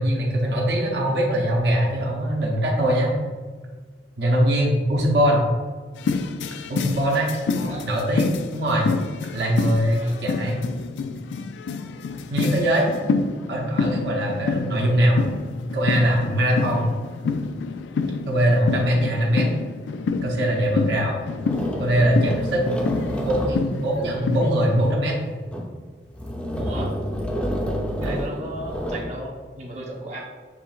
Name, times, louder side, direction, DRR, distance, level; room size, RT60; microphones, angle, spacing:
voice 1, 0.0-3.1 4.2-5.4 6.7-7.3 7.8-8.9 9.3-10.6 12.3-12.9 13.5-15.2 15.7-16.8 18.3-19.5 20.2-21.2 21.8-22.6 23.2-25.2, right 1 dB, 70° right, -3 dB, 0.8 m, -21 dB
sound 1, 6.0-24.9, left 4 dB, 90° left, 0.3 m, -28 dB
voice 2, 7.5-7.9 10.0-10.2 16.7-16.9 26.5-26.9 28.0-30.2, right 1 dB, 40° right, -3 dB, 0.9 m, -35 dB
sound 2, 20.6-20.8 21.4-24.6 25.3-25.8 26.1-29.2, equal, 5° left, 0.5 m, -29 dB
6.9 x 3.0 x 2.4 m, 1.5 s
head